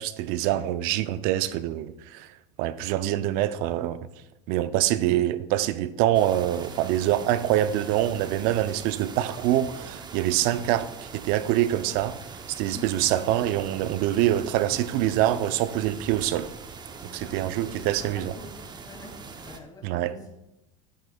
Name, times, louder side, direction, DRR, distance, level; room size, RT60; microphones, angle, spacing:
voice 1, 0.0-4.0 4.5-16.5 17.1-18.3 19.8-20.1, right 13 dB, 60° right, 0.6 m, -25 dB
sound 1, 6.1-19.6, right 4 dB, 25° right, 0.8 m, -42 dB
voice 2, 17.0-18.5 18.8-20.3, left 3 dB, 25° left, 2.7 m, -46 dB
10.5 x 8.1 x 2.3 m
hypercardioid pair, 90°, 17 cm